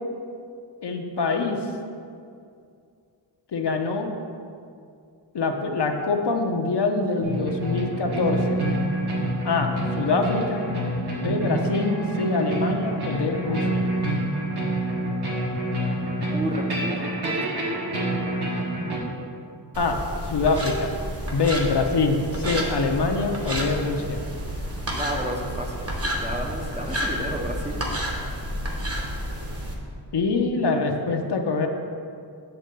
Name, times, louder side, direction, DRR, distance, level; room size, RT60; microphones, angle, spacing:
voice 1, 0.8-1.6 3.5-4.1 5.3-8.6 9.4-10.6 11.2-13.8 19.7-20.0 20.3-20.9 21.3-24.2 30.1-31.7, left 3 dB, 65° left, 3 dB, 0.8 m, -24 dB
sound 1, 7.2-19.0, right 1 dB, 60° right, 1.5 m, -27 dB
voice 2, 16.3-17.5 24.9-25.8 26.2-27.8, right 1 dB, 15° right, 0 dB, 0.6 m, -31 dB
sound 2, 19.7-29.8, equal, 30° right, 1.1 m, -30 dB
8.0 x 3.7 x 6.7 m, 2.4 s
wide cardioid pair, 135°, 45 cm